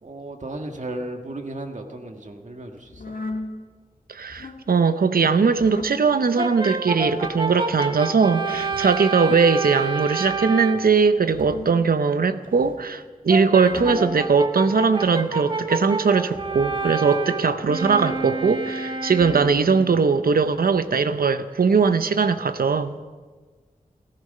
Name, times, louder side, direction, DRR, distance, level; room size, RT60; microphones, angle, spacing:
voice 1, 0.0-3.1, right 1 dB, 55° right, 1.7 m, -35 dB
sound 1, 2.9-3.5 4.2-4.6 5.5-6.0 7.0-7.4 8.5-9.0 10.1-10.5 11.2-11.8 12.4-12.9 13.5-14.2 14.9-15.4 16.3-16.9 17.8-18.4 19.1-19.7 20.4-20.9 21.7-21.9, left 3 dB, 75° left, 1.5 m, -38 dB
voice 2, 4.1-23.0, right 5 dB, 85° right, 0.7 m, -20 dB
Brass instrument, 6.4-10.9 13.3-19.6, right 3 dB, 35° right, 1.3 m, -28 dB
17.0 x 15.0 x 5.5 m
wide cardioid pair, 65°, 15 cm